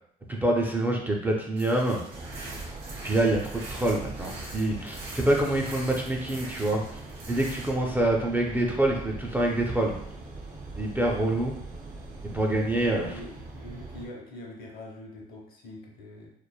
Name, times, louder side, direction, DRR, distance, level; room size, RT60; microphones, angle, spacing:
voice 1, 0.3-2.0 3.0-7.0 7.3-10.0 10.8-11.6 12.2-13.2, right 1 dB, 10° right, -1 dB, 0.3 m, -26 dB
sound 1, 1.6-7.7, right 1 dB, 85° right, 1.0 m, -43 dB
sound 2, 2.1-14.1, right 3 dB, 60° right, 0.5 m, -41 dB
voice 2, 12.8-16.3, left 1 dB, 60° left, -1 dB, 0.8 m, -44 dB
3.0 x 2.0 x 2.2 m, 0.69 s
cardioid pair, 110°, 17 cm